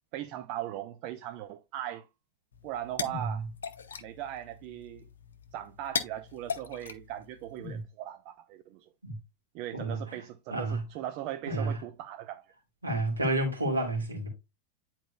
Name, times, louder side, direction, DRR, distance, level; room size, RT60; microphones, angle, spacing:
voice 1, 0.1-2.1 2.6-3.5 4.0-5.1 5.5-8.9 9.5-12.4, right 12 dB, 45° right, 0.5 m, -39 dB
sound 1, 2.5-7.8, left 6 dB, 65° left, 0.7 m, -40 dB
voice 2, 3.1-3.4 7.6-7.8 9.0-9.2 9.7-10.1 10.5-10.8 11.5-11.8 12.8-14.3, right 2 dB, 80° right, 2.5 m, -30 dB
10.0 x 4.4 x 2.2 m
figure-of-eight pair, 90°, 0 cm